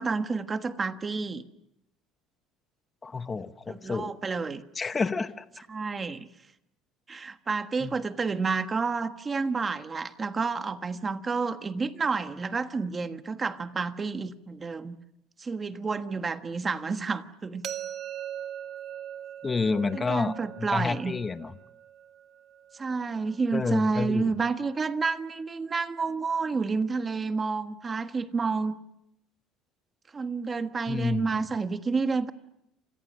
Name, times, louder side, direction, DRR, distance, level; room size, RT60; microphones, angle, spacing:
voice 1, 0.0-1.4 3.7-4.6 5.7-6.3 7.1-15.0 15.4-17.7 19.9-21.1 22.7-28.8 30.1-32.3, right 4 dB, 20° right, 1.4 m, -30 dB
voice 2, 3.0-4.1 4.8-5.4 7.8-7.9 19.4-21.5 23.5-24.3 30.9-31.3, left 4 dB, 20° left, 1.1 m, -29 dB
sound 1, 17.6-23.5, right 10 dB, 45° right, 1.5 m, -41 dB
29.5 x 26.5 x 6.3 m
cardioid pair, 150°, 0 cm